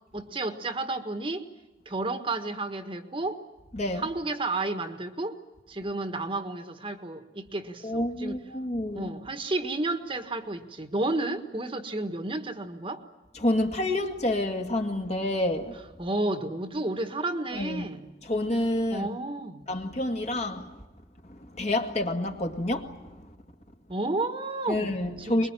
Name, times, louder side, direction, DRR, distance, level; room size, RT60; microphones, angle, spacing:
voice 1, 0.1-1.5 1.8-3.4 4.0-5.4 5.7-8.4 8.9-13.0 16.0-18.1 18.9-19.7 23.9-24.9 25.3-25.5, right 2 dB, 30° right, 1.6 m, -31 dB
voice 2, 3.7-4.1 7.8-9.1 13.3-15.8 17.5-17.9 18.2-19.1 19.7-20.8 21.2-23.4 24.7-25.5, left 1 dB, 40° left, 2.2 m, -29 dB
24.5 x 22.0 x 9.1 m
head